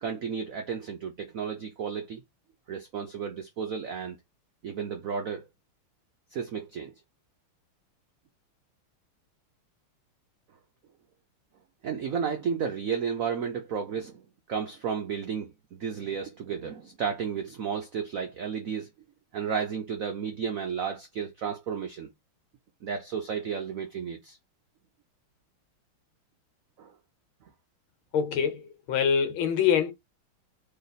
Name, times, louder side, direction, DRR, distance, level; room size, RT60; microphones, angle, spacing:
voice 1, 0.0-2.2 2.7-4.2 4.6-5.4 6.3-6.9 11.8-14.2 14.5-18.9 19.3-22.1 22.8-24.4 26.8-26.9, right 6 dB, 85° right, 0.7 m, -33 dB
voice 2, 28.1-29.9, left 7 dB, 70° left, 1.6 m, -25 dB
3.3 x 3.2 x 4.0 m
omnidirectional pair, 2.3 m